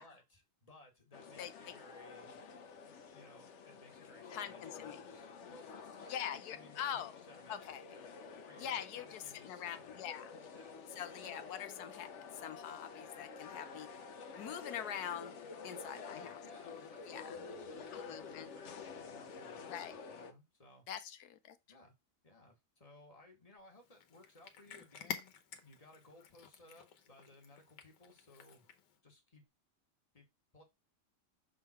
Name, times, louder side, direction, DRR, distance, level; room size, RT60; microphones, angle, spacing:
voice 1, 0.0-2.4 3.1-10.0 10.5-10.8 15.6-20.8 21.7-21.9 22.2-28.7 29.0-29.4 30.1-30.2 30.5-30.6, left 2 dB, 20° left, 1.8 m, -61 dB
sound 1, 1.1-20.3, left 5 dB, 55° left, 0.9 m, -50 dB
voice 2, 1.4-1.7 4.3-5.0 6.1-7.1 7.5-7.8 8.6-10.3 11.0-13.9 14.3-15.3 15.6-16.4 17.1-17.4 17.7-18.5 19.7-20.0 20.9-21.6, left 9 dB, 70° left, 1.2 m, -44 dB
Cat, 23.8-29.0, left 7 dB, 85° left, 1.6 m, -50 dB
6.5 x 3.8 x 4.3 m
omnidirectional pair, 1.8 m